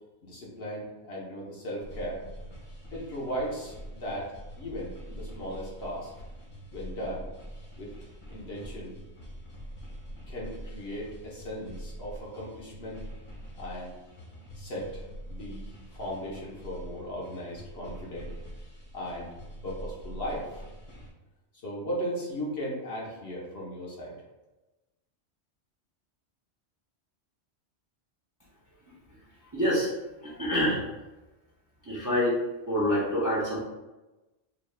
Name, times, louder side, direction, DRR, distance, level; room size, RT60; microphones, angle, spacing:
voice 1, 0.2-2.2 2.9-6.1 6.7-7.3 7.8-7.9 8.3-8.9 10.3-13.0 13.6-13.9 14.5-18.3 18.9-19.3 19.6-20.6 21.6-24.1, equal, 60° left, -4 dB, 1.2 m, -37 dB
sound 1, 1.8-21.1, equal, 30° left, 0.8 m, -44 dB
voice 2, 29.5-29.9 30.2-30.8 31.8-32.4 32.7-33.6, equal, 20° right, -7 dB, 0.5 m, -26 dB
4.0 x 2.3 x 3.3 m, 1.1 s
omnidirectional pair, 1.2 m